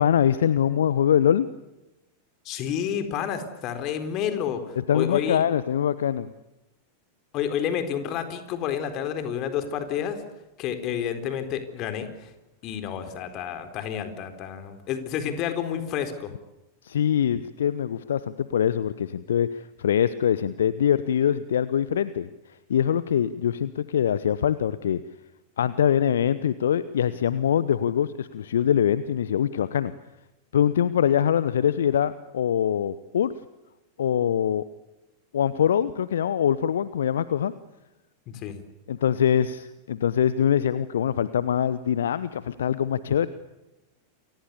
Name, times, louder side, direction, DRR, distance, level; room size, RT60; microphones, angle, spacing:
voice 1, 0.0-1.5 4.8-6.3 16.8-22.3 22.7-25.0 25.6-29.9 30.5-33.3 34.0-34.6 35.3-37.5 38.9-43.3, left 9 dB, 65° left, 16 dB, 0.9 m, -23 dB
voice 2, 2.4-5.4 7.3-10.2 10.6-12.3 12.6-16.3 38.3-38.6, left 9 dB, 40° left, 9 dB, 4.2 m, -30 dB
29.0 x 24.5 x 7.0 m, 0.97 s
figure-of-eight pair, 90°, 0 cm